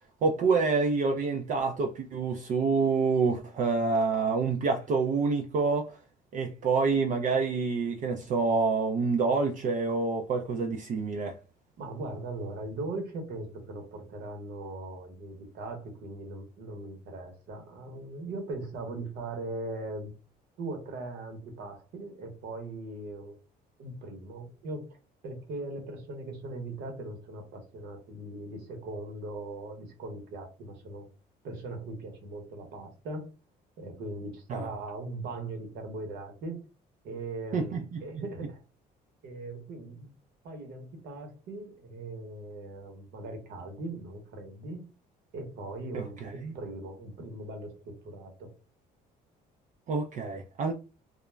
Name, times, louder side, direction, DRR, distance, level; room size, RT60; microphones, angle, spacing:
voice 1, 0.2-6.0 6.3-11.4 34.5-34.7 37.5-38.2 45.9-46.5 49.9-50.7, right 4 dB, 50° right, 0.4 m, -27 dB
voice 2, 11.8-20.1 20.6-23.4 23.8-24.8 25.2-31.0 31.4-33.3 33.8-36.6 37.0-38.6 39.2-40.1 40.4-44.8 45.3-48.5, right 2 dB, 75° right, 0.9 m, -39 dB
2.3 x 2.0 x 3.1 m
cardioid pair, 110°, 17 cm